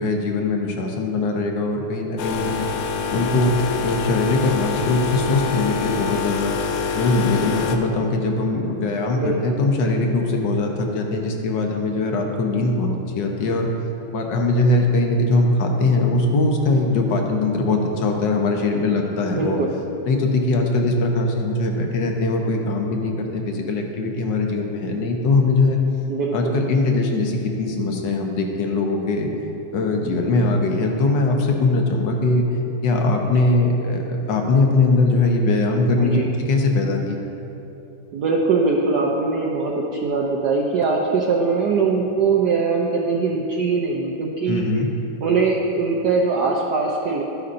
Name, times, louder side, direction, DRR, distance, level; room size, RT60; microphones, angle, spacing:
voice 1, 0.0-2.7 3.1-3.6 3.8-6.6 6.9-12.9 13.1-13.7 14.1-19.6 20.1-25.8 26.3-29.3 29.7-32.5 32.8-37.2 44.5-44.9, left 2 dB, 60° left, 2 dB, 1.5 m, -21 dB
sound 1, 2.2-7.8, left 5 dB, 85° left, 1.6 m, -26 dB
voice 2, 9.1-9.6 19.3-19.7 26.1-26.5 36.0-36.2 38.1-44.6 45.2-47.2, right 4 dB, 65° right, -2 dB, 1.1 m, -21 dB
12.5 x 9.7 x 2.6 m, 3.0 s
omnidirectional pair, 2.4 m